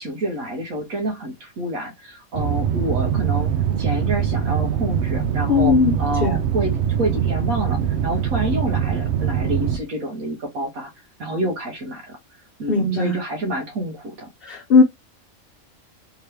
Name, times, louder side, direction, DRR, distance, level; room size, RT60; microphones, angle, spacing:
voice 1, 0.0-3.5 3.8-6.7 7.0-10.9 11.2-12.2 12.6-14.3, right 1 dB, 85° right, 1.5 m, -28 dB
sound 1, 2.3-9.8, right 9 dB, 60° right, 0.8 m, -23 dB
voice 2, 5.5-6.4 12.7-13.2 14.4-14.8, left 4 dB, 50° left, 0.9 m, -18 dB
3.6 x 2.9 x 3.2 m
omnidirectional pair, 1.4 m